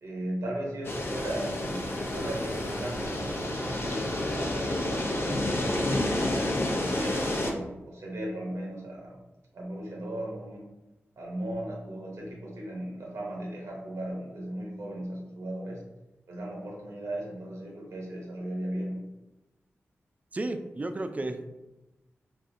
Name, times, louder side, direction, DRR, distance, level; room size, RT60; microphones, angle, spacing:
voice 1, 0.0-4.1 4.3-5.9 6.6-9.2 9.5-10.6 11.2-15.8 16.3-19.1, right 1 dB, 85° right, -2 dB, 0.9 m, -37 dB
sound 1, 0.8-7.5, left 1 dB, 50° left, 0.6 m, -30 dB
voice 2, 20.3-21.5, right 2 dB, 30° right, 8 dB, 0.3 m, -33 dB
3.4 x 2.5 x 2.6 m, 1.0 s
cardioid pair, 55°, 5 cm